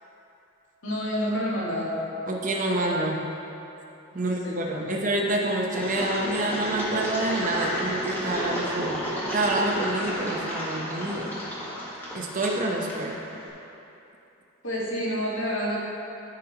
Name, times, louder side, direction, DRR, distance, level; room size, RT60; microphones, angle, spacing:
voice 1, 0.8-2.0 4.1-5.1 14.6-15.8, equal, 65° left, -6 dB, 1.7 m, -29 dB
voice 2, 2.3-3.2 4.1-9.0 9.3-11.3 12.1-13.1, right 1 dB, 35° right, 0 dB, 0.7 m, -27 dB
Engine, 5.7-13.5, equal, 10° left, 1.2 m, -32 dB
13.5 x 5.2 x 2.9 m, 2.9 s
head